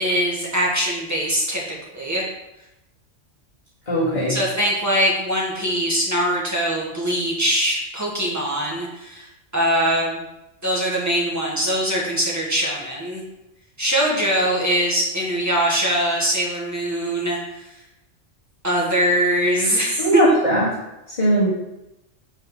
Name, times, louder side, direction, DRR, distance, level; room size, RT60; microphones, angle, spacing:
voice 1, 0.0-1.6 1.9-2.3 4.3-9.3 9.5-10.2 10.6-13.2 13.8-17.7 18.6-20.2, equal, 15° right, -4 dB, 1.7 m, -22 dB
voice 2, 3.9-4.4 20.0-20.7 21.1-21.5, equal, 35° left, -9 dB, 2.1 m, -19 dB
5.2 x 5.1 x 5.5 m, 0.94 s
omnidirectional pair, 1.3 m